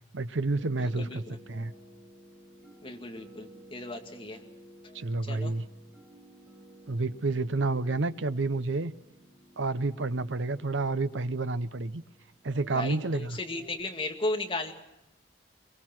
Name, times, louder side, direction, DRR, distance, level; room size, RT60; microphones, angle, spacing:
voice 1, 0.1-1.2 1.5-1.7 4.9-5.6 6.9-8.9 9.6-12.0 12.4-13.4, right 3 dB, 80° right, 0.8 m, -29 dB
sound 1, 0.5-13.7, equal, 50° right, 7.3 m, -54 dB
voice 2, 0.8-1.4 2.8-4.4 5.3-5.5 12.7-14.7, left 2 dB, 30° left, 2.1 m, -35 dB
23.0 x 23.0 x 6.1 m
head